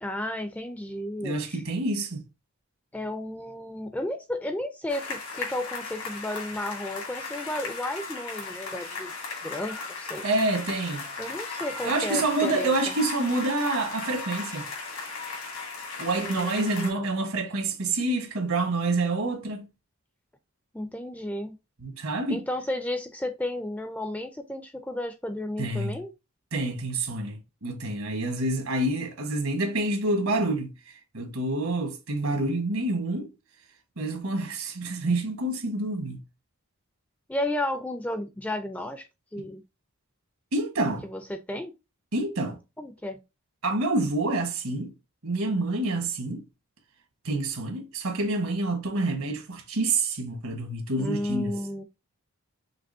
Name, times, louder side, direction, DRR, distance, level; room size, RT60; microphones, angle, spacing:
voice 1, 0.0-1.6 2.9-9.1 9.4-10.2 11.2-13.0 16.2-17.1 20.7-21.6 22.3-26.1 37.3-39.1 39.3-39.6 41.0-41.7 42.8-43.2 51.0-51.8, left 1 dB, 5° left, 0.4 m, -33 dB
voice 2, 1.2-2.2 10.2-11.1 11.8-14.7 16.0-19.7 21.8-22.4 25.6-26.0 26.5-30.7 31.1-33.3 34.0-36.2 39.4-39.5 40.5-41.1 42.1-42.6 43.6-44.9 45.2-46.4 47.2-51.5, right 2 dB, 75° right, 1.3 m, -27 dB
sound 1, 4.9-16.9, left 4 dB, 85° left, 2.4 m, -36 dB
6.0 x 3.0 x 2.6 m
head